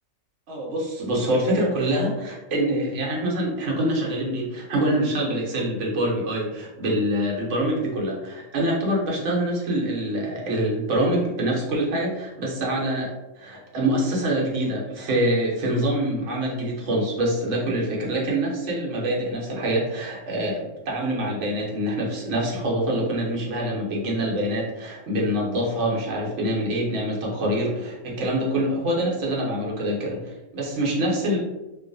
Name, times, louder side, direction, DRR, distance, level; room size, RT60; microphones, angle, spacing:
voice 1, 0.5-13.1 13.4-31.4, right 1 dB, 70° right, -3 dB, 1.1 m, -25 dB
2.6 x 2.3 x 2.5 m, 1.0 s
omnidirectional pair, 1.3 m